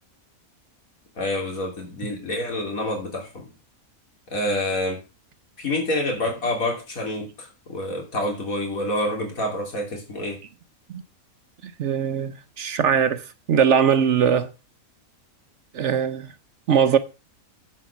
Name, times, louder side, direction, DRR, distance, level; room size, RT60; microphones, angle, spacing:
voice 1, 1.2-3.5 4.3-5.0 5.6-10.4, left 1 dB, 70° left, 3.4 m, -27 dB
voice 2, 11.8-14.5 15.7-16.3 16.7-17.0, right 7 dB, 60° right, 1.0 m, -21 dB
7.7 x 7.6 x 6.9 m
omnidirectional pair, 1.5 m